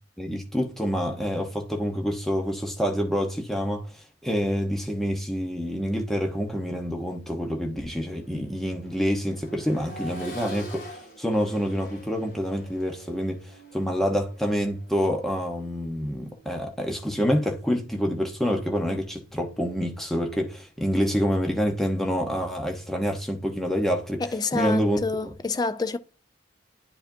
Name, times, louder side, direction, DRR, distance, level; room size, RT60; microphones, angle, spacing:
voice 1, 0.2-3.9 4.2-13.4 13.7-24.2 24.5-25.3, equal, ahead, 0.9 m, -27 dB
Accelerating revving vroom, 7.2-17.1 18.8-18.9, right 2 dB, 50° left, 2.3 m, -45 dB
voice 2, 24.2-26.0, left 3 dB, 20° left, 0.3 m, -28 dB
10.0 x 4.9 x 2.6 m
head